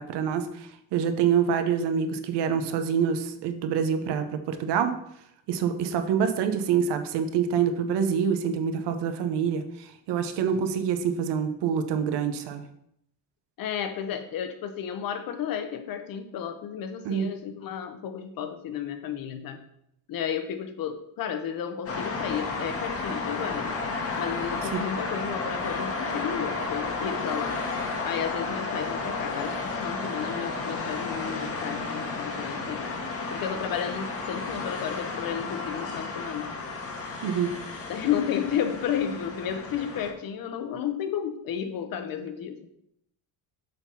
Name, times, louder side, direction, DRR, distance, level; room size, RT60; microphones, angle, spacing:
voice 1, 0.0-4.9 5.5-12.6 17.0-17.3 24.7-24.8 37.2-37.5, right 7 dB, 85° right, 8 dB, 0.9 m, -26 dB
voice 2, 13.6-19.6 20.1-23.8 24.2-27.6 28.0-32.8 33.3-36.5 37.9-42.6, left 8 dB, 60° left, 8 dB, 0.8 m, -32 dB
sound 1, 21.9-40.1, left 3 dB, 35° left, 1.1 m, -32 dB
6.8 x 4.0 x 5.5 m, 0.75 s
cardioid pair, 155°, 40 cm